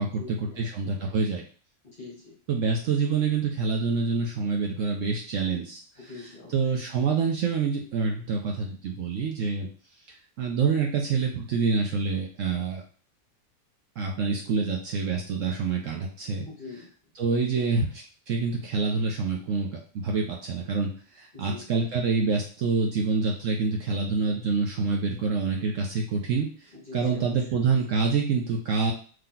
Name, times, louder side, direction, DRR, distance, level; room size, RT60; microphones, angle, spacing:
voice 1, 0.0-1.1 1.8-2.4 6.0-6.7 14.5-14.6 16.5-16.9 21.3-21.7 26.7-27.7, left 3 dB, 40° left, -2 dB, 0.8 m, -45 dB
voice 2, 0.6-1.4 2.5-5.8 6.5-9.7 10.4-12.8 14.0-16.5 17.2-28.9, right 4 dB, 65° right, 1 dB, 0.8 m, -26 dB
3.3 x 2.9 x 3.8 m, 0.41 s
omnidirectional pair, 1.7 m